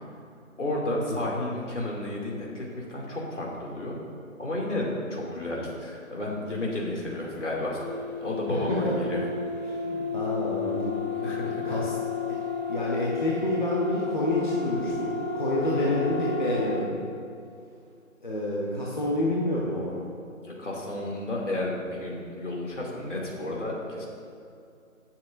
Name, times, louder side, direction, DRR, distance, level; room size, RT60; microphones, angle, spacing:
voice 1, 0.6-4.0 4.4-7.8 8.2-9.3 11.2-11.8 15.7-15.9 20.4-24.1, left 1 dB, 60° left, -3 dB, 2.6 m, -32 dB
sound 1, 7.8-16.9, left 4 dB, 85° left, 2.2 m, -32 dB
voice 2, 8.5-8.9 9.6-11.0 11.6-11.9 12.3-12.4 12.7-17.0 18.2-19.9, left 1 dB, 35° left, -5 dB, 1.1 m, -28 dB
17.5 x 7.4 x 2.6 m, 2.5 s
figure-of-eight pair, 165°, 41 cm